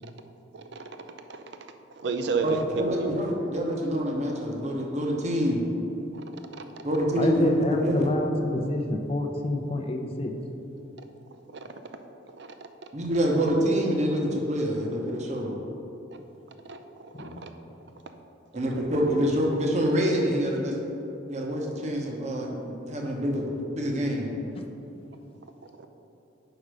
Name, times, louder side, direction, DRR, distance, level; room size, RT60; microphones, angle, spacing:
voice 1, 0.5-0.8 1.3-1.4 2.0-3.2 6.5-6.6 12.4-12.5 16.7-17.5, right 4 dB, 60° right, 7 dB, 0.5 m, -31 dB
voice 2, 2.4-5.6 6.8-8.1 12.9-15.5 18.5-20.7 21.3-24.3, equal, 35° right, 0 dB, 0.9 m, -26 dB
voice 3, 7.2-10.3 17.2-17.4, left 1 dB, 30° left, 4 dB, 0.5 m, -28 dB
5.2 x 4.9 x 6.1 m, 2.9 s
head